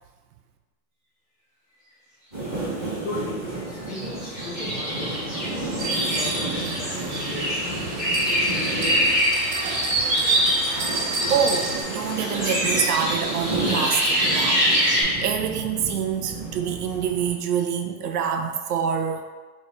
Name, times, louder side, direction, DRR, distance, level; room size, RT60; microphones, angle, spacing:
sound 1, 2.3-17.3, right 2 dB, 15° left, 0.4 m, -33 dB
voice 1, 2.4-7.8 8.3-9.1, left 2 dB, 45° left, -5 dB, 1.3 m, -37 dB
sound 2, 3.9-15.0, equal, ahead, 0.8 m, -25 dB
sound 3, 5.8-11.8, right 2 dB, 90° right, 1.0 m, -30 dB
voice 2, 11.3-19.2, right 7 dB, 70° right, 5 dB, 0.6 m, -26 dB
3.5 x 3.1 x 4.2 m, 1.3 s
supercardioid pair, 180°, 49 cm